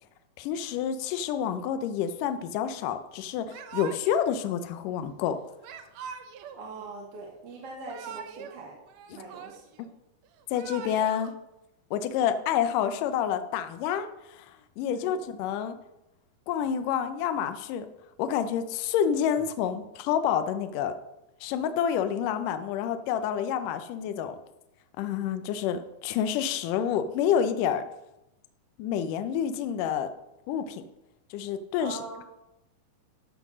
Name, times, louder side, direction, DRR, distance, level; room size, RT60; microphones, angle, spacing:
voice 1, 0.4-5.4 10.5-11.3 11.9-15.8 16.5-17.9 18.2-20.9 21.4-24.4 25.0-27.8 28.8-30.1 30.5-30.8 31.3-32.0, left 9 dB, 80° left, 9 dB, 2.2 m, -28 dB
Yell / Crying sobbing, 3.5-4.3 5.6-6.6 7.7-8.6 8.9-9.8 10.4-11.3, right 7 dB, 70° right, 1.7 m, -42 dB
voice 2, 6.6-8.8 9.1-9.6 14.9-15.2 31.8-32.2, right 3 dB, 55° right, -1 dB, 2.2 m, -42 dB
13.5 x 5.6 x 6.1 m, 0.90 s
omnidirectional pair, 3.9 m